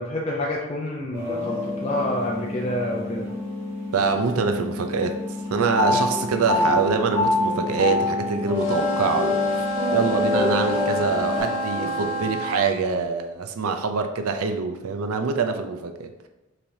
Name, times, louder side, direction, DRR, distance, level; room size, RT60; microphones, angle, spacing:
voice 1, 0.0-1.6 1.8-3.3 5.9-6.0 6.6-6.8, left 1 dB, 30° left, -3 dB, 0.4 m, -28 dB
sound 1, 1.1-4.6 5.0-12.3, left 2 dB, 30° right, 1.4 m, -27 dB
sound 2, 1.4-11.4, left 2 dB, 45° left, 1.1 m, -34 dB
voice 2, 3.9-5.2 5.5-9.6 9.9-16.3, right 5 dB, 85° right, 7 dB, 0.5 m, -25 dB
sound 3, 8.6-12.7, right 1 dB, 70° left, 1.1 m, -29 dB
5.7 x 3.3 x 2.7 m, 0.98 s
head